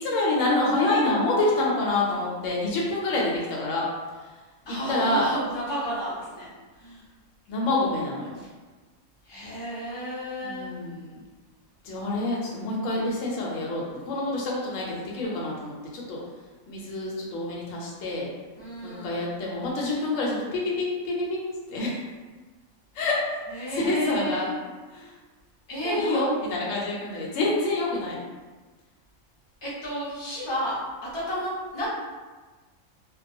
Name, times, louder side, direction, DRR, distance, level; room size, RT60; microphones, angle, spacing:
voice 1, 0.0-3.8 4.7-5.3 7.5-8.4 10.4-11.2 11.8-16.2 16.7-18.3 18.8-21.4 21.7-22.0 22.9-23.2 23.7-24.5 24.9-25.1 25.8-28.2, left 2 dB, 70° left, -4 dB, 0.9 m, -27 dB
voice 2, 4.7-6.5 6.8-7.0 8.4-8.5 9.2-10.7 18.6-19.2 23.5-24.5 25.7-26.2 29.6-30.8 31.1-31.9, equal, 30° left, -8 dB, 0.5 m, -32 dB
2.2 x 2.2 x 2.6 m, 1.3 s
omnidirectional pair, 1.5 m